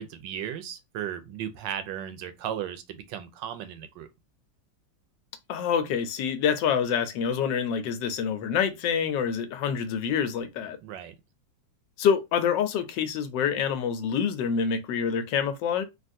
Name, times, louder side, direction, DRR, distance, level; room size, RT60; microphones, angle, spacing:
voice 1, 0.0-4.1 10.8-11.1, right 9 dB, 85° right, 1.3 m, -36 dB
voice 2, 5.5-10.8 12.0-15.8, left 7 dB, 80° left, 1.2 m, -26 dB
3.5 x 2.4 x 2.6 m
omnidirectional pair, 2.0 m